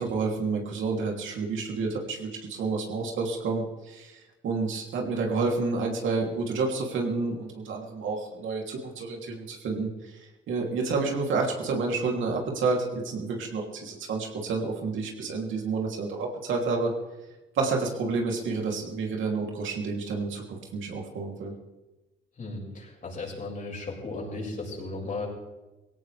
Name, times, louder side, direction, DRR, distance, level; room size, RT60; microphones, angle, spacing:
voice 1, 0.0-4.2 4.4-10.1 10.5-16.9 17.5-21.5, right 4 dB, 75° right, 0 dB, 3.1 m, -29 dB
voice 2, 22.4-25.3, left 3 dB, 40° left, -2 dB, 6.2 m, -35 dB
18.5 x 17.0 x 3.5 m, 1.1 s
cardioid pair, 90°, 20 cm